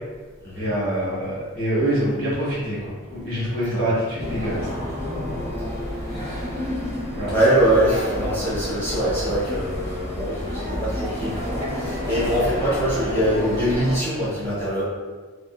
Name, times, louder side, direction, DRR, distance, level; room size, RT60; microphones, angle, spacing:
voice 1, 0.5-4.7 7.1-7.3, right 1 dB, 70° right, -7 dB, 1.2 m, -25 dB
sound 1, 4.2-13.9, left 1 dB, 45° right, 0.9 m, -29 dB
voice 2, 7.3-14.8, right 1 dB, 10° left, -10 dB, 1.0 m, -23 dB
2.7 x 2.4 x 2.3 m, 1.4 s
head